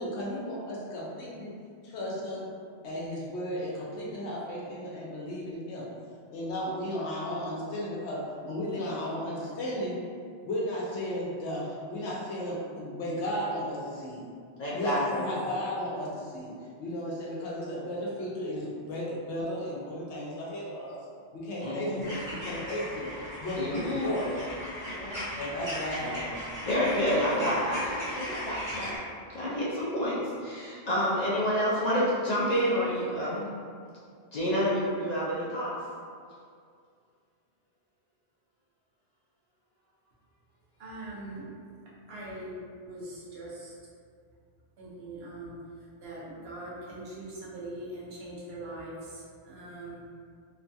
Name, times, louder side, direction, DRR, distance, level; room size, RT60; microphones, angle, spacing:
voice 1, 0.0-1.5 1.8-2.5 2.8-5.9 6.3-10.0 10.4-14.2 14.7-16.5 16.8-21.0 21.3-24.4 25.4-26.5, left 1 dB, 85° left, -5 dB, 1.0 m, -34 dB
voice 2, 14.6-15.3 21.6-22.0 23.6-24.1 24.9-25.2 26.6-28.9 29.3-33.5 34.3-35.7, equal, 55° left, -7 dB, 0.5 m, -29 dB
sound 1, 22.0-29.0, equal, 20° right, 0.9 m, -38 dB
voice 3, 40.8-41.5 42.1-43.7 44.8-45.5 46.0-50.0, right 1 dB, 70° right, -6 dB, 1.0 m, -41 dB
3.0 x 2.3 x 2.6 m, 2.2 s
omnidirectional pair, 1.1 m